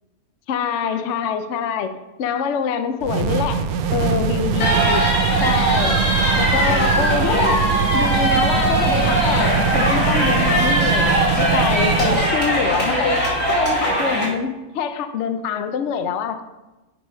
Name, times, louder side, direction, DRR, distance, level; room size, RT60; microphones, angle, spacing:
voice 1, 0.5-3.7 3.9-5.1 5.4-6.0 6.4-7.7 7.9-13.2 13.5-16.4, left 7 dB, 65° left, 8 dB, 0.8 m, -25 dB
sound 1, 3.0-12.4, right 7 dB, 80° right, 1.1 m, -22 dB
sound 2, 4.6-14.2, right 1 dB, 80° left, 3.0 m, -20 dB
sound 3, 7.8-13.8, left 1 dB, 25° left, 0.4 m, -33 dB
8.8 x 5.3 x 4.8 m, 1.1 s
omnidirectional pair, 1.5 m